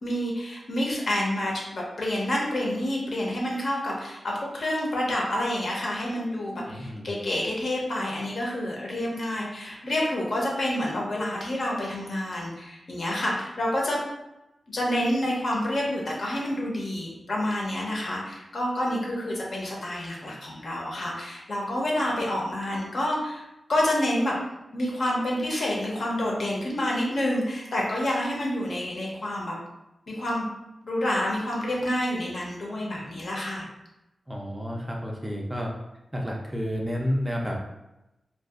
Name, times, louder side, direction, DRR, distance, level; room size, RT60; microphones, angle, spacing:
voice 1, 0.0-14.0 14.7-24.4 24.7-29.5 30.1-30.5 30.8-33.6, left 1 dB, 60° left, -3 dB, 0.7 m, -28 dB
voice 2, 6.7-7.1 34.3-35.7 36.1-37.6, equal, 15° right, -1 dB, 0.4 m, -30 dB
2.6 x 2.3 x 2.3 m, 0.92 s
wide cardioid pair, 115°, 0 cm